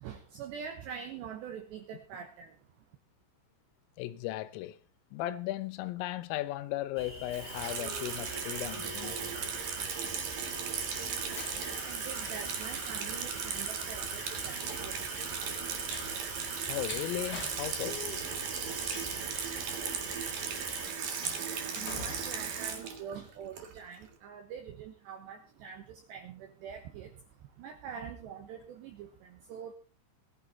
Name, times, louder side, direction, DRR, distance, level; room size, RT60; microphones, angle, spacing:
voice 1, 0.0-2.5 11.8-14.6 14.8-15.0 21.7-27.1 27.6-29.1 29.5-29.7, right 7 dB, 70° right, 3.0 m, -44 dB
voice 2, 4.0-4.8 5.1-9.2 16.7-18.0 20.1-20.2, left 15 dB, 80° left, 3.4 m, -36 dB
sound 1, 6.9-20.9, left 1 dB, 5° left, 2.5 m, -46 dB
Water tap faucet / Sink (filling or washing), 7.3-24.0, right 7 dB, 55° right, 2.7 m, -37 dB
Train, 10.3-23.3, left 4 dB, 40° left, 1.4 m, -48 dB
18.5 x 11.5 x 4.1 m
omnidirectional pair, 6.0 m